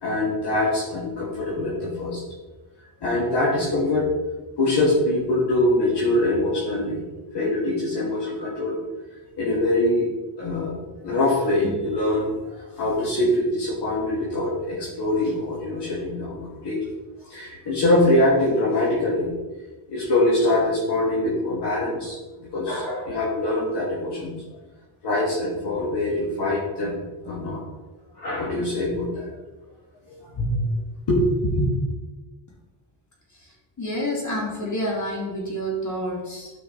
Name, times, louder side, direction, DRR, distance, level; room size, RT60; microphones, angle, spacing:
voice 1, 0.0-2.2 3.0-4.1 4.6-7.0 7.3-8.8 9.4-10.1 10.4-12.3 12.6-16.8 17.2-19.3 19.9-24.3 25.0-27.6 28.2-29.3 30.1-30.6 31.1-31.7, left 1 dB, 55° left, -5 dB, 2.7 m, -23 dB
voice 2, 33.4-36.5, equal, 35° left, -2 dB, 2.7 m, -29 dB
9.7 x 5.7 x 4.2 m, 1.2 s
cardioid pair, 105°, 48 cm